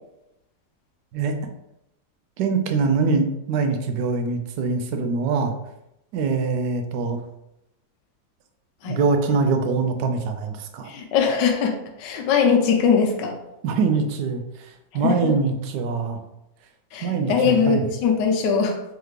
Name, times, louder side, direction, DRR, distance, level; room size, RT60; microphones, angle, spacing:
voice 1, 2.4-5.5 6.1-7.2 8.8-10.9 13.6-16.2 17.0-17.9, right 4 dB, 75° right, 6 dB, 1.1 m, -23 dB
voice 2, 10.8-13.3 14.9-15.3 16.9-18.8, left 6 dB, 70° left, 2 dB, 1.3 m, -21 dB
3.6 x 3.2 x 3.1 m, 0.87 s
omnidirectional pair, 2.0 m